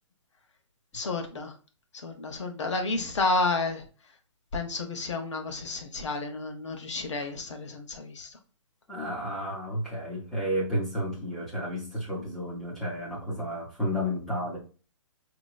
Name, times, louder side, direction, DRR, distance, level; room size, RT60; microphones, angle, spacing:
voice 1, 0.9-1.5 1.9-3.8 4.5-8.4, left 3 dB, 65° left, 5 dB, 1.0 m, -31 dB
voice 2, 8.9-14.6, equal, ahead, -4 dB, 0.3 m, -32 dB
5.2 x 2.9 x 2.3 m, 0.36 s
hypercardioid pair, 175°, 16 cm